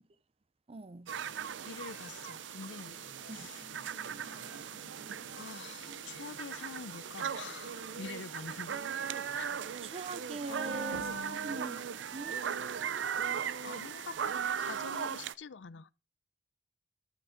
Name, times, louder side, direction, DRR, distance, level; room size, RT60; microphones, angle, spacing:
voice 1, 0.7-1.1 3.3-3.5 9.8-11.1 11.4-11.8 12.1-12.5, right 3 dB, 35° right, 0.6 m, -41 dB
sound 1, 1.1-14.1, left 2 dB, 60° left, 1.5 m, -57 dB
sound 2, 1.1-15.3, right 7 dB, 85° right, 0.5 m, -38 dB
voice 2, 1.6-3.0 3.3-3.6 5.3-8.8 9.3-9.5 10.5-11.6 13.6-15.9, left 5 dB, 75° left, 0.5 m, -46 dB
11.0 x 6.3 x 5.7 m
head